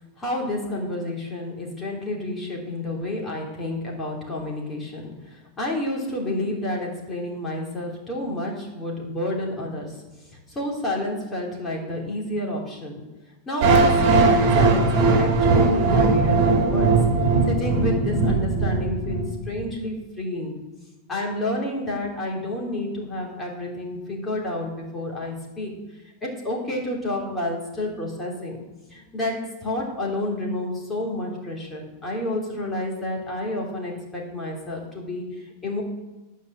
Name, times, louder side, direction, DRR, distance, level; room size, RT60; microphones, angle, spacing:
voice 1, 0.2-10.0 10.3-13.0 13.4-16.9 17.5-20.5 21.1-25.7 26.2-28.6 28.9-35.8, left 1 dB, 15° left, -2 dB, 3.1 m, -30 dB
sound 1, 13.6-19.6, right 3 dB, 45° right, 3.2 m, -19 dB
13.5 x 5.5 x 7.5 m, 1.1 s
supercardioid pair, 145°, 0 cm